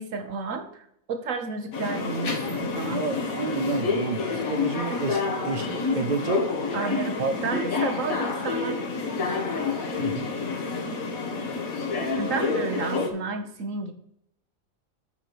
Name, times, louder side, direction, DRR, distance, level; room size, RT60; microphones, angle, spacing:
voice 1, 0.0-3.0 6.7-8.9 12.1-13.9, right 4 dB, 70° right, 7 dB, 1.3 m, -32 dB
sound 1, 1.7-13.1, left 4 dB, 90° left, 2.0 m, -28 dB
voice 2, 2.9-6.4 7.2-7.3 10.0-10.3, right 4 dB, 45° right, 10 dB, 0.6 m, -30 dB
8.5 x 5.0 x 6.0 m, 0.73 s
omnidirectional pair, 1.4 m